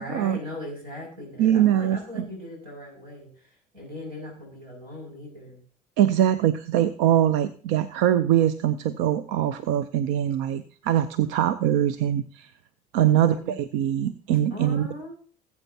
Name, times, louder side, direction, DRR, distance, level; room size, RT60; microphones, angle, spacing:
voice 1, 0.0-5.6 13.0-13.5 14.5-15.2, left 1 dB, 85° right, -2 dB, 6.0 m, -39 dB
voice 2, 1.4-2.3 6.0-12.5 12.9-14.9, right 11 dB, 65° right, 15 dB, 0.6 m, -23 dB
19.5 x 8.2 x 2.8 m, 0.43 s
hypercardioid pair, 55°, 20 cm